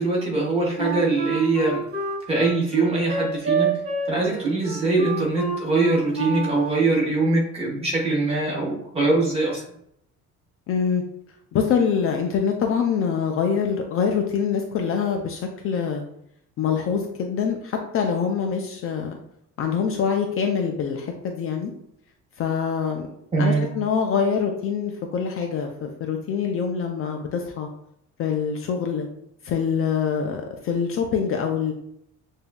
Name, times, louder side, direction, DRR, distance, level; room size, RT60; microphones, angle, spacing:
voice 1, 0.0-1.8 2.3-3.8 4.1-9.6 23.3-23.7, right 3 dB, 20° right, -3 dB, 1.1 m, -22 dB
Wind instrument woodwind instrument, 0.8-7.1, right 4 dB, 45° right, 1.4 m, -27 dB
voice 2, 10.7-11.0 11.5-16.0 16.6-19.2 19.6-21.7 22.4-23.1 23.4-27.7 28.2-29.1 29.4-31.7, left 6 dB, 45° left, 3 dB, 0.4 m, -25 dB
6.9 x 2.7 x 2.2 m, 0.74 s
cardioid pair, 175°, 32 cm